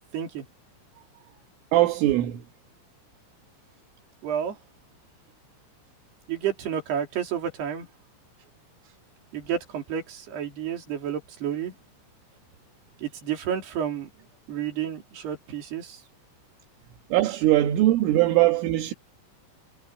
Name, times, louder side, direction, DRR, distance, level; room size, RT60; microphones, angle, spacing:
voice 1, 0.1-0.5 4.2-4.6 6.3-7.9 9.3-11.8 13.0-16.0, right 9 dB, 55° right, 5.3 m, -31 dB
voice 2, 1.7-2.4 17.1-18.9, right 15 dB, 75° right, 4.0 m, -21 dB
omnidirectional pair, 5.9 m